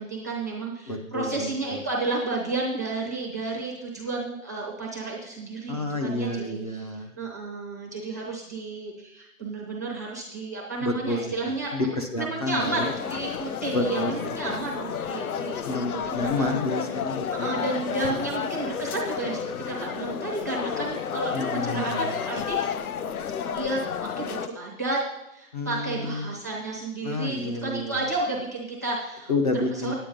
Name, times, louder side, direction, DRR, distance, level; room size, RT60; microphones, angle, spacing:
voice 1, 0.0-11.9 12.2-16.5 17.4-22.6 23.5-23.8 24.2-25.0 25.3-29.3 29.7-29.9, right 3 dB, 15° right, -4 dB, 0.7 m, -32 dB
voice 2, 0.9-1.8 5.7-7.2 10.8-12.9 13.7-14.4 15.6-17.5 21.3-22.1 25.5-26.3 27.0-28.0 29.3-29.9, left 2 dB, 25° left, 4 dB, 0.8 m, -29 dB
sound 1, 12.6-24.5, left 8 dB, 85° left, 0.8 m, -31 dB
9.6 x 9.2 x 5.2 m, 0.88 s
hypercardioid pair, 175°, 42 cm